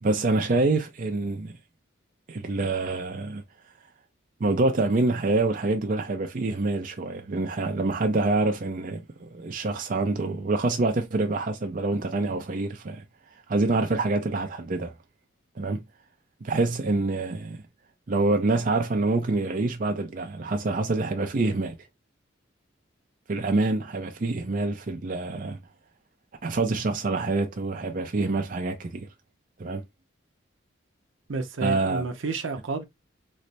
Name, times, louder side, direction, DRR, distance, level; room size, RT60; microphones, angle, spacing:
voice 1, 0.0-1.5 2.3-3.4 4.4-13.0 13.5-14.9 15.6-15.8 16.4-17.6 18.1-21.7 23.3-25.6 26.4-29.1 29.6-29.8 31.6-32.1, right 3 dB, 40° right, 0.5 m, -26 dB
voice 2, 31.3-32.8, right 4 dB, 80° right, 0.7 m, -30 dB
3.2 x 2.0 x 3.9 m
head